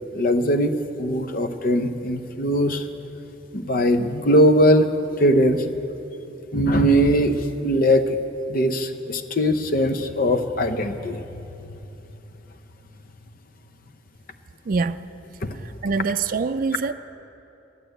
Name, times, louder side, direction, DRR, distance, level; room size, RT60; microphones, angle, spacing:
voice 1, 0.1-2.9 3.5-4.9 5.2-5.6 6.5-7.4 7.6-8.2 8.5-11.2 15.4-15.6, equal, 50° left, 9 dB, 0.7 m, -20 dB
voice 2, 14.7-15.0 15.8-16.9, right 4 dB, 50° right, 11 dB, 0.4 m, -24 dB
12.5 x 11.0 x 7.9 m, 3.0 s
head